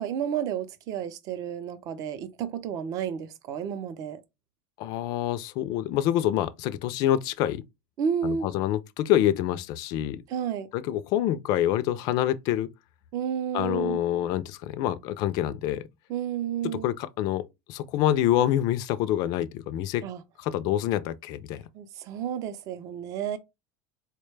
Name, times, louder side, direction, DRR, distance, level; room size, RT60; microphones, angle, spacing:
voice 1, 0.0-4.2 8.0-8.5 10.3-10.7 13.1-14.0 16.1-16.9 20.0-20.2 21.7-23.4, right 8 dB, 40° right, 0.5 m, -31 dB
voice 2, 4.8-7.6 8.2-10.2 10.7-12.7 13.5-15.9 16.8-17.4 17.7-20.0 20.4-21.6, left 12 dB, 45° left, 0.3 m, -26 dB
4.3 x 2.2 x 3.2 m
supercardioid pair, 155°, 9 cm